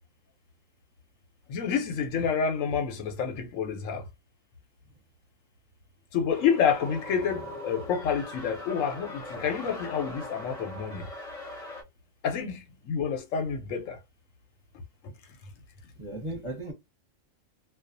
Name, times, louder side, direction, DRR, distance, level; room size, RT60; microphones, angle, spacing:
voice 1, 1.5-4.0 6.1-11.1 12.2-14.0, left 7 dB, 85° left, 1.1 m, -28 dB
sound 1, 6.3-11.8, left 1 dB, 35° left, 0.8 m, -41 dB
voice 2, 7.1-7.5 16.0-16.7, right 1 dB, 25° right, 0.9 m, -37 dB
2.4 x 2.3 x 2.5 m
omnidirectional pair, 1.3 m